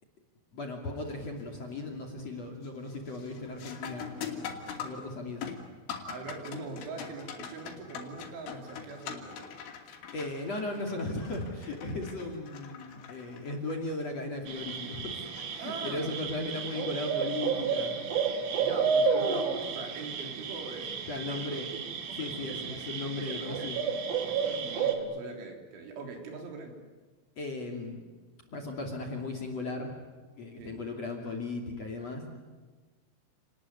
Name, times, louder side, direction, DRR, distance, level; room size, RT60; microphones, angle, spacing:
voice 1, 0.5-4.5 4.8-5.5 10.1-15.2 15.4-17.9 21.1-21.7 22.2-23.8 27.4-28.0 28.5-29.9 30.3-32.3, left 2 dB, 40° left, 1 dB, 3.2 m, -37 dB
sound 1, 1.1-1.4 1.9-2.3 2.6-16.1 18.7-18.8 19.6-19.8, left 7 dB, 70° left, 5.0 m, -44 dB
voice 2, 6.1-9.5 15.6-16.2 18.6-21.0 21.3-21.6 22.1-26.8 30.6-30.8, right 4 dB, 70° right, 2 dB, 6.0 m, -42 dB
sound 2, 14.5-24.9, right 6 dB, 55° right, 3.6 m, -32 dB
30.0 x 19.5 x 9.7 m, 1.4 s
omnidirectional pair, 5.6 m